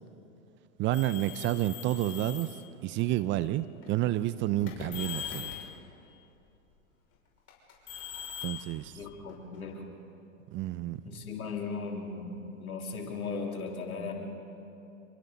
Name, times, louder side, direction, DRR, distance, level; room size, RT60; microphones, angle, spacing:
voice 1, 0.8-2.5 2.8-5.5 8.4-8.9 10.5-11.0, right 14 dB, 30° right, 15 dB, 0.5 m, -30 dB
sound 1, 0.9-2.6 3.5-3.8 4.6-5.7 7.5-9.6, left 9 dB, 35° left, 5.9 m, -41 dB
voice 2, 9.0-9.8 11.1-12.3 12.6-14.1, left 4 dB, 90° left, 0 dB, 3.4 m, -37 dB
28.5 x 23.0 x 4.0 m, 2.9 s
hypercardioid pair, 110°, 42 cm